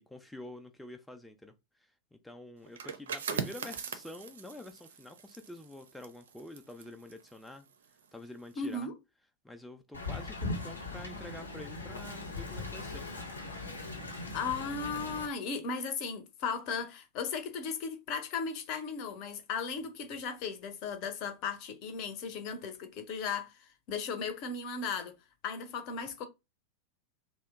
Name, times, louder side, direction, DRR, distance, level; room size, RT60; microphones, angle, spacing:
voice 1, 0.0-7.7 8.1-8.9 9.4-13.0, left 1 dB, 5° left, 0.4 m, -48 dB
sound 1, 2.7-8.2 8.5-8.8, right 6 dB, 65° right, 0.4 m, -41 dB
voice 2, 8.6-8.9 14.3-23.5 23.9-25.1 25.4-26.3, left 5 dB, 40° left, 0.7 m, -36 dB
Wind, 9.9-15.2, left 2 dB, 80° left, 0.8 m, -39 dB
2.8 x 2.1 x 3.5 m
figure-of-eight pair, 90°, 0 cm